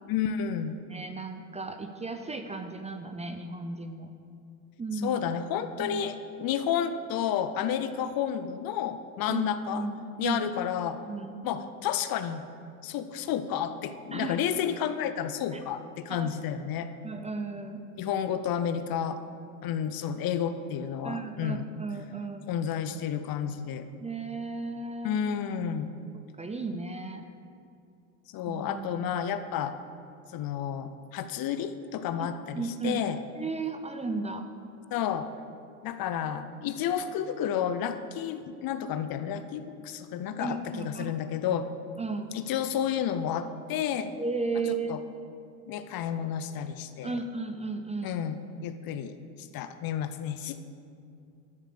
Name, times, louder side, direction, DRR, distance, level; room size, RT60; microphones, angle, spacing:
voice 1, 0.1-0.8 5.0-9.8 10.2-11.0 11.4-12.4 12.8-16.9 18.0-19.2 19.6-21.6 22.5-23.8 25.0-25.9 28.3-29.8 30.3-33.2 34.9-35.3 35.8-41.7 42.3-44.1 44.9-45.0 45.7-47.2 48.0-50.6, left 9 dB, 50° left, 11 dB, 0.7 m, -31 dB
voice 2, 0.9-4.1 4.8-5.3 5.8-6.1 9.3-10.4 11.0-11.4 14.1-14.4 15.5-15.6 16.1-16.3 17.0-17.8 21.0-22.5 24.0-25.2 26.4-27.2 28.5-28.9 32.2-32.3 32.5-33.0 33.4-34.4 40.4-41.1 42.0-42.4 44.2-45.0 47.0-48.2, right 4 dB, 15° right, 7 dB, 0.6 m, -34 dB
11.5 x 4.9 x 6.8 m, 2.5 s
supercardioid pair, 95°, 45 cm